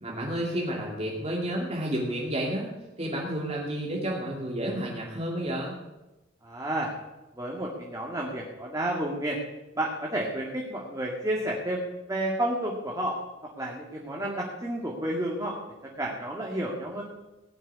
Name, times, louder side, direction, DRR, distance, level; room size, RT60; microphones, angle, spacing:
voice 1, 0.0-2.7 3.0-5.7, right 1 dB, 35° right, -3 dB, 2.6 m, -31 dB
voice 2, 6.4-6.9 7.4-9.4 9.8-11.8 12.1-13.1 13.6-15.6 16.0-17.0, right 1 dB, 15° right, -3 dB, 2.0 m, -31 dB
19.0 x 6.6 x 9.7 m, 1.1 s
head